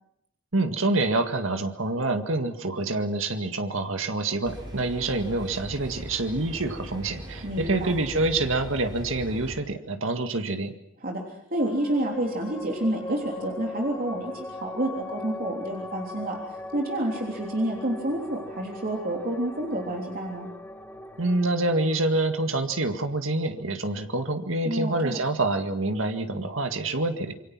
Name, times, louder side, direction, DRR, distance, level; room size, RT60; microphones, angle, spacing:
voice 1, 0.5-10.7 21.2-27.3, right 2 dB, 75° right, 6 dB, 2.0 m, -26 dB
sound 1, 4.4-9.6, equal, 20° right, 7.3 m, -40 dB
voice 2, 7.4-7.9 11.0-16.4 16.7-20.5 24.6-25.2, right 1 dB, 45° right, 0 dB, 3.5 m, -29 dB
sound 2, 11.5-24.4, left 2 dB, 10° left, 2.3 m, -40 dB
27.5 x 24.0 x 6.1 m, 0.74 s
head